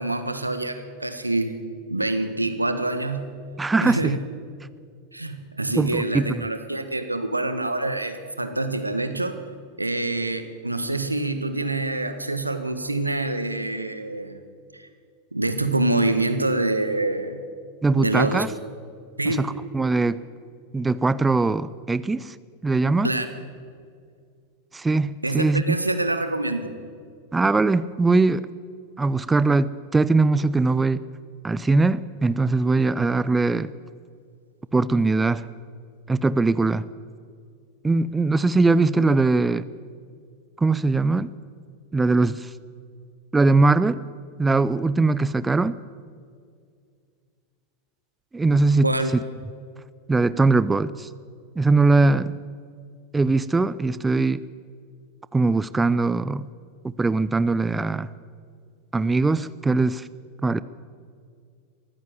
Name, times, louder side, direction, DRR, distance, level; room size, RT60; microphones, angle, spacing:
voice 1, 0.0-1.6 1.9-3.3 3.8-4.2 5.1-9.4 9.8-14.4 14.7-14.9 15.3-17.4 17.9-18.4 19.2-19.4 23.0-23.3 25.2-26.7 48.8-49.1, right 2 dB, 90° right, 9 dB, 1.5 m, -26 dB
voice 2, 3.6-4.2 5.8-6.4 17.8-18.5 19.3-20.2 20.7-22.4 22.6-23.1 24.7-25.8 27.3-28.5 29.0-31.0 31.4-33.7 34.7-35.5 36.1-36.9 37.8-39.7 40.6-41.3 41.9-42.5 43.3-44.0 44.4-45.7 48.3-48.9 50.1-51.1 51.6-52.4 53.1-54.4 55.3-56.5 56.8-58.1 58.9-60.1 60.4-60.6, right 3 dB, 10° right, 17 dB, 0.6 m, -21 dB
23.0 x 15.0 x 7.9 m, 2.2 s
figure-of-eight pair, 90°, 0 cm